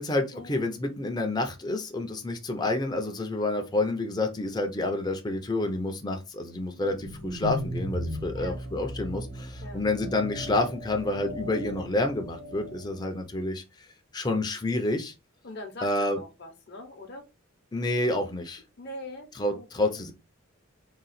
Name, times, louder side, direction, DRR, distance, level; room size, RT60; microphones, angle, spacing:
voice 1, 0.0-13.6 14.1-15.1 15.8-16.2 17.7-18.6 19.3-20.1, left 2 dB, 20° left, 0.6 m, -29 dB
sound 1, 6.7-13.1, equal, 70° right, 2.3 m, -37 dB
voice 2, 15.4-17.2 18.8-19.3 19.5-20.0, left 1 dB, 50° left, 0.8 m, -42 dB
3.8 x 2.3 x 4.1 m
head